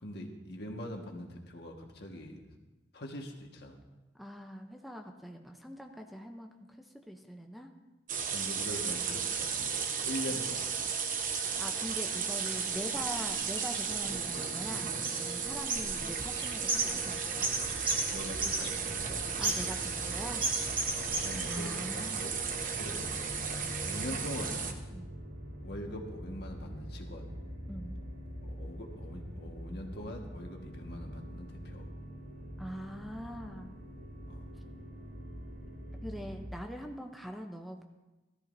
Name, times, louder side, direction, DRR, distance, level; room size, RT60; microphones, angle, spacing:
voice 1, 0.0-2.5 2.9-3.8 8.3-10.7 18.1-19.2 20.9-22.3 22.8-23.1 23.8-24.7 25.6-27.4 28.4-31.8 34.3-34.4, left 1 dB, 65° left, 2 dB, 1.6 m, -42 dB
voice 2, 4.1-7.7 10.3-10.4 11.3-17.5 19.4-21.0 21.5-22.3 24.9-25.1 27.7-28.0 32.6-33.7 36.0-37.8, equal, ahead, 4 dB, 0.6 m, -43 dB
sound 1, 8.1-24.7, right 6 dB, 50° right, 1.0 m, -35 dB
sound 2, 12.2-12.5 13.2-14.7 15.0-15.4 15.7-19.1 19.4-20.1 20.4-21.6, right 2 dB, 30° right, 1.6 m, -34 dB
sound 3, 17.5-36.5, equal, 80° right, 3.9 m, -44 dB
17.5 x 13.0 x 2.6 m, 1.1 s
head